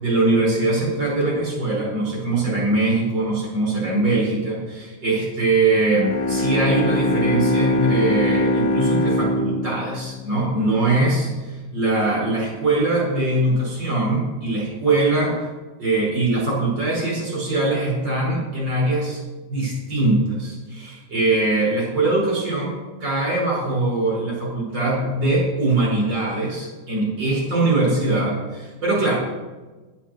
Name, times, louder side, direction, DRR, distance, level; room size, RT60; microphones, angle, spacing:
voice 1, 0.0-15.5 15.8-19.2 19.5-22.7 23.0-29.1, right 2 dB, 80° right, -4 dB, 6.2 m, -22 dB
Bowed string instrument, 5.9-11.0, left 1 dB, 60° left, 1.3 m, -22 dB
11.0 x 10.0 x 6.6 m, 1.3 s
omnidirectional pair, 2.0 m